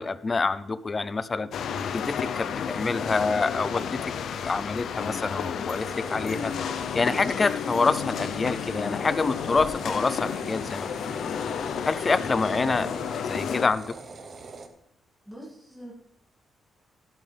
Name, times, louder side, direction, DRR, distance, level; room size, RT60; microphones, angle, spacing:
voice 1, 0.0-1.5 1.9-4.0 4.4-6.5 6.9-11.1 11.8-12.9 13.3-13.9, left 4 dB, 25° left, 15 dB, 0.5 m, -26 dB
sound 1, 1.5-13.7, left 7 dB, 70° left, 0.7 m, -32 dB
sound 2, 4.8-13.6, left 7 dB, 85° left, 1.4 m, -42 dB
sound 3, 5.7-14.7, right 4 dB, 40° right, 1.3 m, -44 dB
voice 2, 12.4-12.9 15.3-15.9, right 2 dB, 5° right, -5 dB, 2.5 m, -43 dB
12.0 x 12.0 x 3.4 m, 0.80 s
cardioid pair, 145°, 0 cm